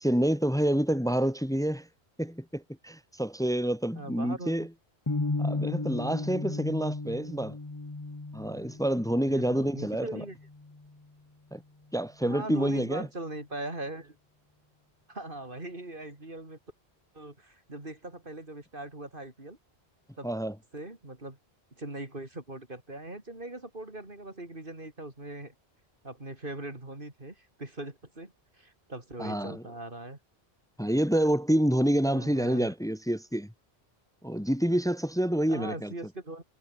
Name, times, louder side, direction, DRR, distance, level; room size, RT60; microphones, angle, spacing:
voice 1, 0.0-1.9 2.2-4.7 5.4-7.6 8.3-10.2 11.5-11.6 11.9-13.1 20.2-20.5 29.2-29.6 30.8-33.5 34.2-35.9, right 1 dB, 5° left, 0.6 m, -28 dB
voice 2, 3.9-4.5 9.3-10.4 12.2-14.2 15.1-16.6 17.1-19.6 20.2-20.3 20.7-21.4 21.8-25.5 26.0-30.2 32.0-32.7 35.5-36.4, right 2 dB, 50° right, 4.5 m, -40 dB
sound 1, 5.1-11.1, left 2 dB, 20° left, 1.2 m, -35 dB
omnidirectional pair, 1.1 m